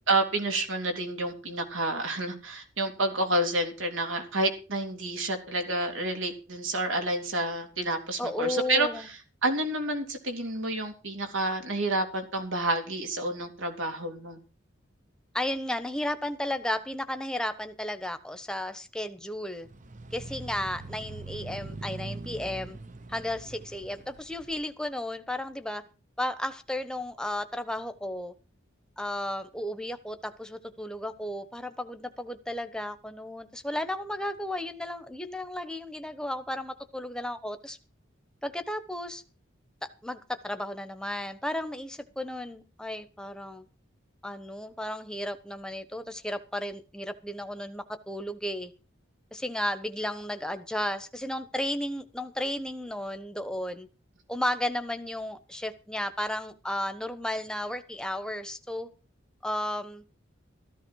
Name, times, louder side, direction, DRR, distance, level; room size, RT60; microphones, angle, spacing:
voice 1, 0.1-9.1 9.4-14.4, right 2 dB, 80° right, 3.5 m, -29 dB
voice 2, 8.2-9.1 15.3-19.7 20.1-22.8 23.1-25.8 26.2-28.3 29.0-37.8 38.4-39.2 40.0-43.7 44.2-48.7 49.3-53.9 54.3-58.9 59.4-60.0, left 1 dB, 5° left, 1.1 m, -34 dB
sound 1, 19.6-24.6, right 2 dB, 40° right, 0.9 m, -42 dB
14.0 x 14.0 x 4.7 m
head